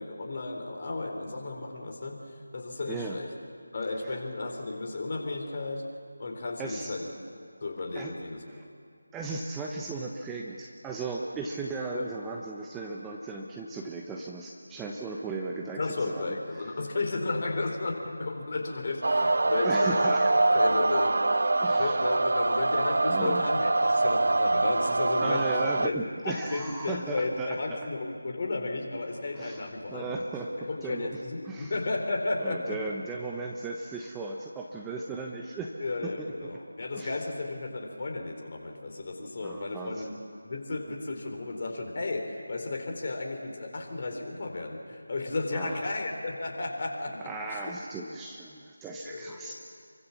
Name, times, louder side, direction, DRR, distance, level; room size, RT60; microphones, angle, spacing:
voice 1, 0.0-3.3 3.7-5.8 6.2-7.1 7.6-8.4 11.9-12.1 15.8-20.1 20.5-21.2 21.8-25.4 25.8-26.0 26.2-30.2 30.6-32.8 35.8-40.2 40.4-47.2 47.5-47.6 49.0-49.5, left 2 dB, 40° left, 2 dB, 4.4 m, -33 dB
voice 2, 2.9-3.2 4.0-4.2 6.6-6.9 7.9-8.1 8.5-8.6 9.1-16.3 19.6-20.3 21.6-22.0 23.1-23.4 25.2-27.6 29.3-30.5 30.8-31.1 31.4-31.7 32.4-35.7 36.0-36.3 36.9-37.2 39.4-40.1 45.5-45.8 47.2-49.5, right 3 dB, 5° right, 0 dB, 1.1 m, -36 dB
sound 1, 19.0-25.9, right 2 dB, 60° right, 0.6 m, -24 dB
27.5 x 24.0 x 7.3 m, 2.2 s
figure-of-eight pair, 165°, 0 cm